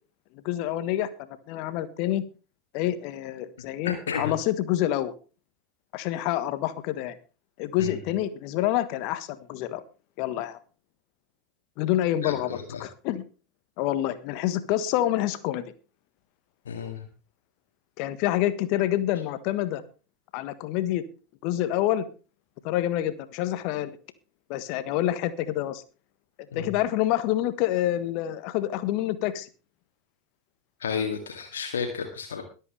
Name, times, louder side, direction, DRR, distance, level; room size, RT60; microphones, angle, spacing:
voice 1, 0.4-1.1 1.5-2.2 2.7-5.1 5.9-7.1 7.6-9.8 10.2-10.6 11.8-12.5 12.8-13.2 13.8-15.6 18.0-19.8 20.3-21.0 21.4-22.0 22.6-23.9 24.5-25.8 26.5-29.5, left 13 dB, 50° left, 14 dB, 1.4 m, -27 dB
voice 2, 3.8-4.3 7.8-8.1 12.2-12.8 16.7-17.1 26.5-26.8 30.8-32.4, left 6 dB, 70° left, 3 dB, 2.1 m, -32 dB
22.0 x 8.2 x 3.4 m, 0.34 s
figure-of-eight pair, 85°, 0 cm